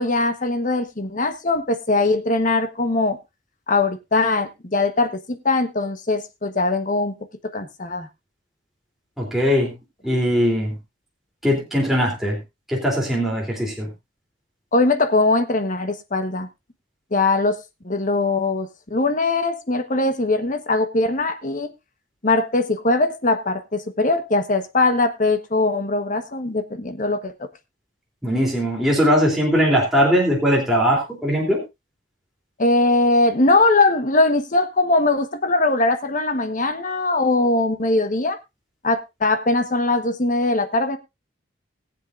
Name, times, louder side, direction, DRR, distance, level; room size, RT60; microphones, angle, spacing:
voice 1, 0.0-3.2 3.7-7.1 7.4-8.1 14.7-16.5 17.1-17.6 17.8-21.7 22.2-27.3 32.6-38.4 38.8-41.0, left 2 dB, 45° left, 8 dB, 1.2 m, -21 dB
voice 2, 9.2-9.7 10.0-10.7 11.4-12.4 12.7-13.9 28.2-31.6, equal, ahead, -3 dB, 3.2 m, -20 dB
20.5 x 7.7 x 2.5 m, 0.23 s
head